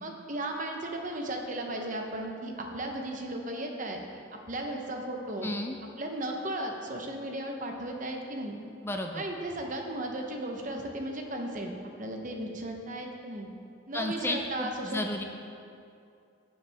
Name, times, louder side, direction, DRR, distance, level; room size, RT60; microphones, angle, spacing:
voice 1, 0.0-4.0 4.5-5.5 6.0-8.6 9.1-11.7 12.0-13.5 13.9-15.1, right 1 dB, 40° right, 2 dB, 0.9 m, -35 dB
voice 2, 5.4-5.8 8.8-9.2 13.9-15.2, left 1 dB, 10° left, 3 dB, 0.5 m, -33 dB
14.5 x 7.4 x 3.5 m, 2.5 s
head